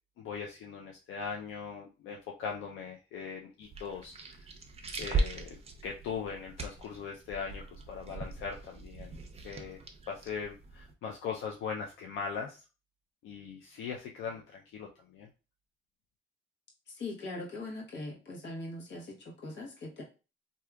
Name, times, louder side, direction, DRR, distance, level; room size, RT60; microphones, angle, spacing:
voice 1, 0.2-4.5 5.0-5.6 5.8-9.2 9.4-12.6 13.2-15.3, left 6 dB, 85° left, 0 dB, 0.5 m, -40 dB
sound 1, 3.6-10.9, right 3 dB, 30° right, 0.6 m, -39 dB
voice 2, 16.9-20.0, left 2 dB, 65° left, -1 dB, 1.2 m, -41 dB
3.5 x 2.7 x 2.3 m, 0.32 s
cardioid pair, 90°, 20 cm